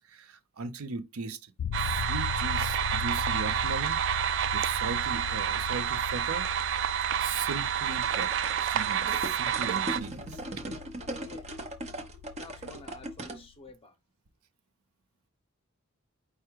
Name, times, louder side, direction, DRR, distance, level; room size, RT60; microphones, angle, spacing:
voice 1, 0.0-1.5 1.8-4.0 4.5-6.5 7.2-8.3 8.6-10.4, right 4 dB, 85° right, 0.7 m, -38 dB
sound 1, 1.6-13.5, left 8 dB, 80° left, 0.3 m, -39 dB
sound 2, 1.7-10.0, right 10 dB, 55° right, 0.3 m, -29 dB
sound 3, 7.9-13.4, right 1 dB, 30° right, 0.8 m, -39 dB
voice 2, 11.2-11.5 12.4-14.0, left 3 dB, 25° left, 0.8 m, -49 dB
4.8 x 2.3 x 4.5 m
head